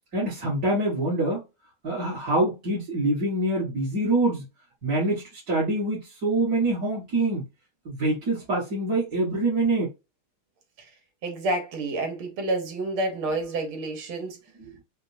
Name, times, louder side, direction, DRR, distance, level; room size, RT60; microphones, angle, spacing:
voice 1, 0.1-1.4 1.8-4.5 4.8-7.4 7.9-9.9, right 2 dB, 45° right, 1.8 m, -25 dB
voice 2, 11.2-14.4, right 2 dB, 75° right, 2.0 m, -29 dB
4.3 x 2.2 x 2.5 m
omnidirectional pair, 2.4 m